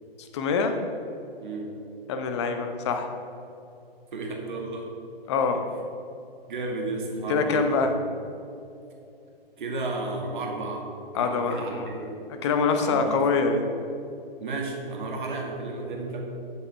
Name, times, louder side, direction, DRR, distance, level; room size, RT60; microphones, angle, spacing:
voice 1, 0.2-0.8 2.1-3.1 5.3-5.6 7.3-7.9 11.1-11.9 12.3-13.7, left 4 dB, 30° left, 6 dB, 0.8 m, -25 dB
voice 2, 1.4-1.7 4.1-4.9 6.5-7.8 9.6-10.9 11.2-12.2 12.7-13.2 14.4-16.2, right 3 dB, 50° right, 0 dB, 2.0 m, -32 dB
13.0 x 7.5 x 3.4 m, 2.7 s
figure-of-eight pair, 125°, 31 cm